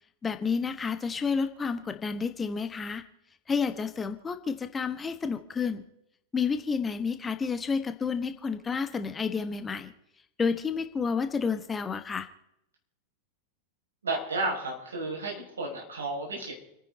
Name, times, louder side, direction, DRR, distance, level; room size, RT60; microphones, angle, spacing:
voice 1, 0.2-3.0 3.5-5.8 6.3-9.9 10.4-12.3, left 5 dB, 15° left, 9 dB, 1.4 m, -30 dB
voice 2, 14.0-16.5, right 2 dB, 70° right, -1 dB, 6.3 m, -32 dB
30.0 x 10.0 x 4.1 m, 0.81 s
figure-of-eight pair, 90°, 0 cm